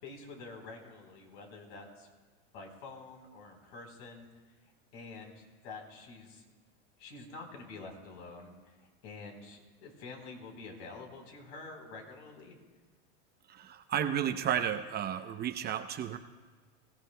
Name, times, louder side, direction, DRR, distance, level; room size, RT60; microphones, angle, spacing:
voice 1, 0.0-2.1 2.5-4.3 4.9-6.4 7.0-12.6, left 3 dB, 60° left, 2 dB, 4.0 m, -48 dB
voice 2, 13.5-16.2, right 9 dB, 30° right, 8 dB, 0.7 m, -32 dB
23.5 x 16.0 x 2.2 m, 1.3 s
supercardioid pair, 120°, 34 cm